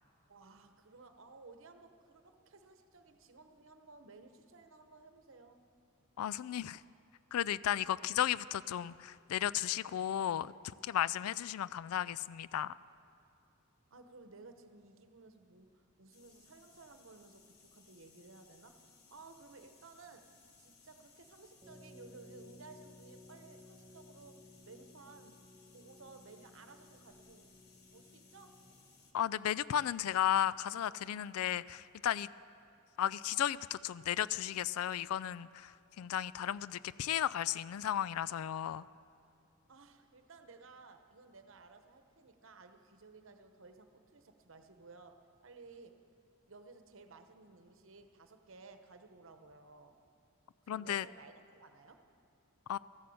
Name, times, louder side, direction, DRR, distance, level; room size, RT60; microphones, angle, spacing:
voice 1, 0.3-5.7 13.9-20.3 20.6-25.4 25.7-27.5 27.9-28.6 39.7-46.0 46.5-50.0 50.6-52.1, right 3 dB, 65° right, 7 dB, 1.0 m, -57 dB
voice 2, 6.2-6.8 7.3-12.7 29.1-32.3 33.0-38.8 50.7-51.1 52.7-52.8, left 10 dB, 85° left, 19 dB, 0.3 m, -34 dB
sound 1, 16.1-29.1, left 4 dB, 45° left, 1.4 m, -64 dB
sound 2, 21.6-29.1, left 1 dB, 10° right, 1.6 m, -58 dB
14.0 x 11.0 x 7.8 m, 2.6 s
head